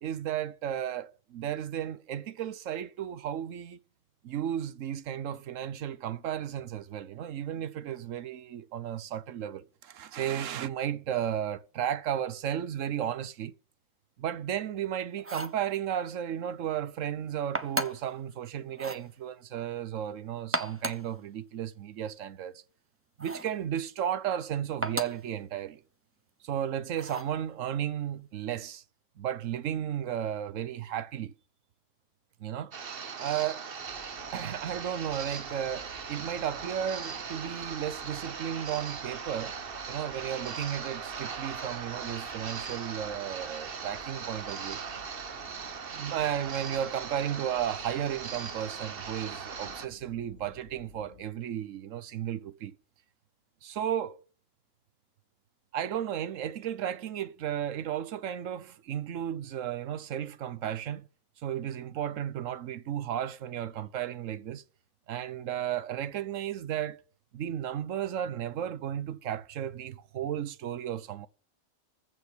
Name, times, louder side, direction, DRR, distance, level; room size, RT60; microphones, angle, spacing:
voice 1, 0.0-3.8 4.2-13.5 14.2-22.6 23.2-25.8 26.4-28.8 29.2-31.3 32.4-32.8 33.2-33.7 34.3-39.5 39.9-44.8 45.9-52.8 53.6-54.2 55.7-61.1 61.4-64.6 65.1-67.0 67.3-71.3, right 10 dB, 70° right, 1.1 m, -34 dB
sound 1, 15.2-15.6 17.5-18.1 18.7-19.1 20.4-21.1 23.2-23.6 24.8-25.3 27.0-27.4, right 2 dB, 15° right, 0.7 m, -34 dB
sound 2, 32.7-49.9, right 6 dB, 50° right, 1.1 m, -39 dB
sound 3, 33.8-51.3, left 3 dB, 65° left, 3.1 m, -55 dB
15.0 x 5.3 x 8.1 m
omnidirectional pair, 1.4 m